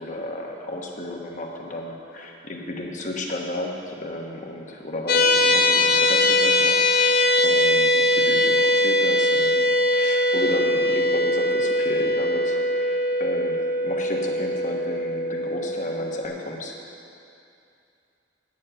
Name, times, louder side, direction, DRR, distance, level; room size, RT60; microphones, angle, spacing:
voice 1, 0.0-16.8, left 1 dB, 45° left, 1 dB, 1.3 m, -33 dB
sound 1, 5.1-16.2, left 1 dB, 60° left, 0.9 m, -21 dB
9.2 x 7.4 x 9.1 m, 2.6 s
head